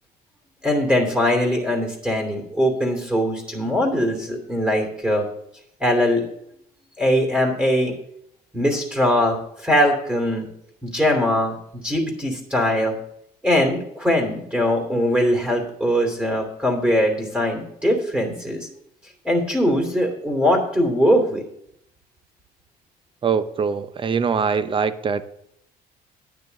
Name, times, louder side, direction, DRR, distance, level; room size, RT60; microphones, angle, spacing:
voice 1, 0.6-5.2 5.8-6.2 7.0-7.9 8.5-10.5 10.8-13.0 13.4-18.7 19.2-21.4, equal, 5° right, 2 dB, 2.7 m, -21 dB
voice 2, 23.2-25.2, right 6 dB, 30° right, 13 dB, 0.7 m, -23 dB
9.9 x 9.4 x 4.0 m, 0.74 s
cardioid pair, 110°, 17 cm